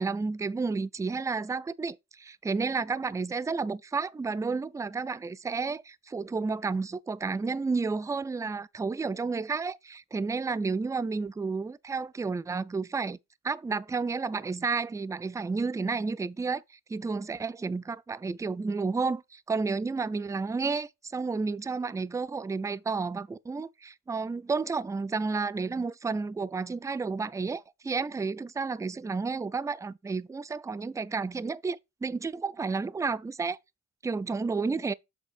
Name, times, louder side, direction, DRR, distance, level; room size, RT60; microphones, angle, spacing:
voice 1, 0.0-13.2 13.4-16.6 16.9-33.6 34.0-34.9, right 4 dB, 10° right, 0.4 m, -31 dB
7.2 x 3.6 x 5.0 m
cardioid pair, 90°, 30 cm